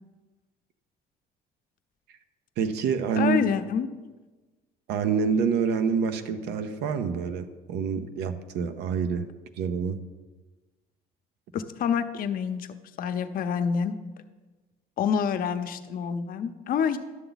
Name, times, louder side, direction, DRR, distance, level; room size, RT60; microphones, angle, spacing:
voice 1, 2.6-3.4 4.9-9.3 9.6-10.0, right 6 dB, 80° right, 8 dB, 0.7 m, -27 dB
voice 2, 3.2-3.9 11.5-12.7 13.0-13.9 15.0-17.0, left 7 dB, 60° left, 9 dB, 0.7 m, -27 dB
11.5 x 6.9 x 4.0 m, 1.3 s
cardioid pair, 110°, 17 cm